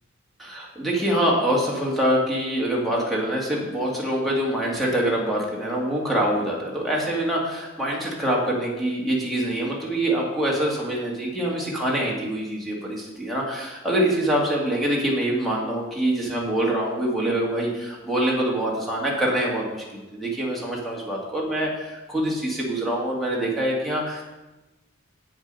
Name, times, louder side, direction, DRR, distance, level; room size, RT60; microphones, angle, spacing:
voice 1, 0.4-24.2, right 1 dB, ahead, -4 dB, 2.1 m, -25 dB
8.0 x 7.4 x 5.5 m, 1.0 s
head